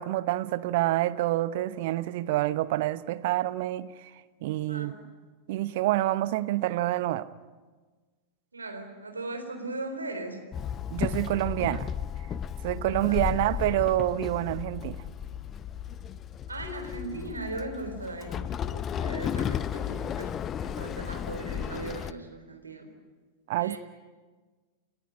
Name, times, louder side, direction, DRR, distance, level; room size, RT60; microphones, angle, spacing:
voice 1, 0.0-4.1 4.4-4.9 5.5-7.3 10.9-11.9 12.6-15.0 23.5-23.8, right 15 dB, 50° right, 0.9 m, -27 dB
voice 2, 8.5-10.4 12.9-13.2 13.5-13.8 16.5-20.3 20.6-22.9 23.6-23.8, right 2 dB, 80° right, 4.0 m, -38 dB
Walk footsteps / Chatter / Hiss, 10.5-22.1, left 9 dB, 25° left, 0.7 m, -34 dB
30.0 x 15.0 x 9.9 m
figure-of-eight pair, 90°, 0 cm